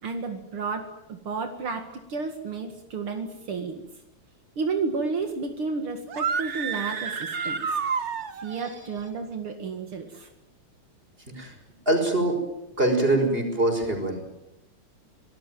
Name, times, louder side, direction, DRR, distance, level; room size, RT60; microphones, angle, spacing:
voice 1, 0.0-3.9 4.6-7.8 8.3-10.3, right 4 dB, 75° right, 5 dB, 2.9 m, -32 dB
sound 1, 6.1-8.7, right 6 dB, 40° right, 1.2 m, -29 dB
voice 2, 11.9-12.3 12.8-14.3, right 2 dB, 25° right, 4 dB, 5.8 m, -23 dB
26.0 x 19.0 x 9.3 m, 0.91 s
omnidirectional pair, 2.4 m